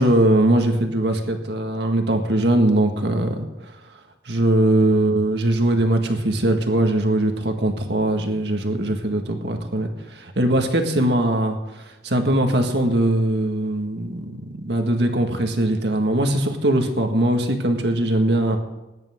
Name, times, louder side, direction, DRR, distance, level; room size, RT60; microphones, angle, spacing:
voice 1, 0.0-3.5 4.3-18.6, right 1 dB, 65° right, 4 dB, 1.8 m, -21 dB
20.5 x 10.5 x 3.7 m, 1.1 s
head